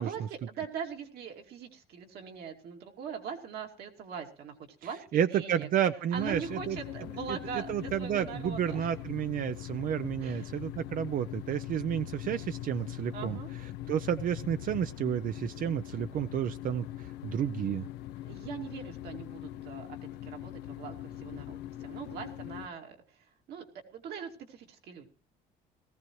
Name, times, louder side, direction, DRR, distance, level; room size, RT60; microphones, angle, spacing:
voice 1, 0.0-4.5 4.8-5.7 6.1-8.9 10.2-10.6 13.1-13.5 18.2-20.0 20.2-23.7 23.9-25.1, right 7 dB, 70° right, 3 dB, 2.6 m, -42 dB
voice 2, 5.1-6.8 7.3-13.4 13.9-16.9 17.2-17.9, right 9 dB, 55° right, 11 dB, 0.6 m, -31 dB
sound 1, 6.1-22.7, left 13 dB, 85° left, 0.7 m, -42 dB
18.5 x 15.0 x 3.1 m, 0.38 s
cardioid pair, 110°, 17 cm